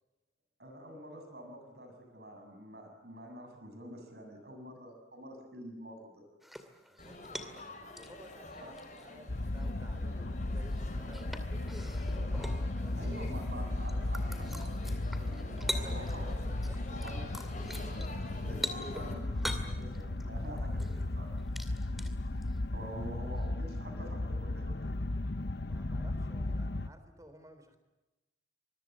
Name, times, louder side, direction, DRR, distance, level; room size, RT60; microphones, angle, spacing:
voice 1, 0.6-6.2 8.6-8.7 12.3-12.6 12.9-16.3 16.9-21.3 21.9-22.0 22.7-24.8, right 1 dB, 60° right, 5 dB, 7.6 m, -47 dB
sound 1, 6.4-7.7 8.0-9.2 9.6-9.7 10.7-13.5 13.8-16.4 16.6-22.6 23.4-23.5, equal, ahead, 2.3 m, -43 dB
voice 2, 6.9-13.3 15.5-17.0 21.1-21.2 22.7-22.8 25.7-27.8, equal, 20° right, 9 dB, 3.6 m, -55 dB
Laughter / Chatter / Crowd, 7.0-19.1, left 2 dB, 40° left, 6.5 m, -48 dB
sound 2, 9.3-26.9, left 2 dB, 65° left, 0.9 m, -35 dB
25.5 x 22.5 x 7.6 m, 1.1 s
head